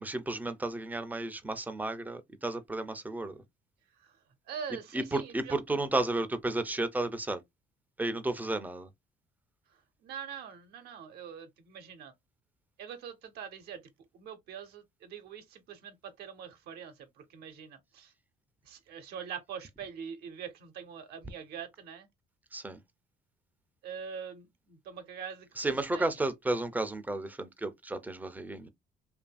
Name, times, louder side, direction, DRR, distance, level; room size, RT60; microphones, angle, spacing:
voice 1, 0.0-3.4 4.9-7.4 8.0-8.9 22.5-22.8 25.6-28.7, right 2 dB, 10° right, 0.4 m, -33 dB
voice 2, 4.5-5.6 9.7-12.1 12.8-13.8 14.1-18.1 18.6-22.1 23.8-26.1, right 7 dB, 75° right, 0.7 m, -44 dB
2.7 x 2.5 x 2.2 m
cardioid pair, 110°, 17 cm